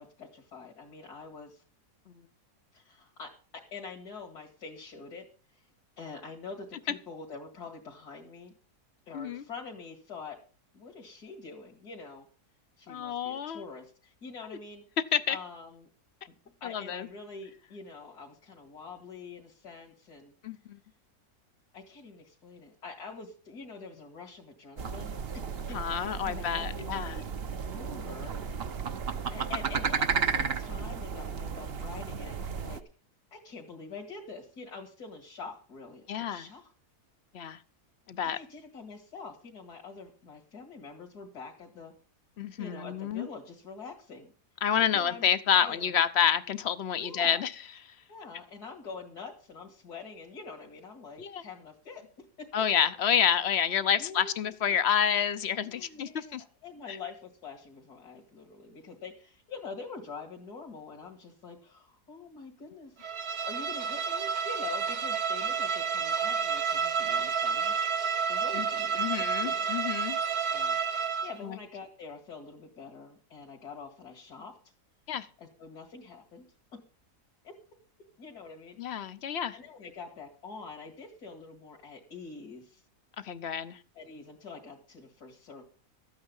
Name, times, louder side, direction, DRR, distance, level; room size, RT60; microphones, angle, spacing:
voice 1, 0.0-1.6 2.7-5.3 5.5-5.7 6.0-8.5 9.1-10.4 10.7-12.3 12.8-14.8 15.3-15.9 16.6-20.3 21.7-25.2 25.7-27.3 27.7-28.4 29.3-32.8 33.3-36.7 38.2-41.9 42.6-44.3 44.8-46.0 47.0-47.4 48.1-52.0 52.4-52.6 54.0-54.8 55.6-56.4 56.6-63.0 63.4-67.8 68.3-70.2 70.5-70.8 71.1-74.6 75.4-76.4 77.4-77.6 78.2-78.8 79.5-82.8 83.9-85.7, left 4 dB, 75° left, 2.5 m, -45 dB
voice 2, 9.1-9.4 12.9-13.6 15.1-15.4 16.6-17.1 20.4-20.8 25.7-27.1 36.1-36.5 37.3-37.6 38.1-38.4 42.4-43.3 44.6-47.5 51.2-51.4 52.5-56.4 56.9-57.0 68.5-68.7 69.0-70.2 71.4-71.6 75.1-75.3 78.8-79.6 83.2-83.8, left 8 dB, 55° left, 0.8 m, -29 dB
sound 1, 24.8-32.8, right 6 dB, 45° right, 0.9 m, -33 dB
Bowed string instrument, 63.0-71.4, right 6 dB, 70° right, 1.4 m, -30 dB
13.5 x 8.8 x 5.4 m
omnidirectional pair, 1.7 m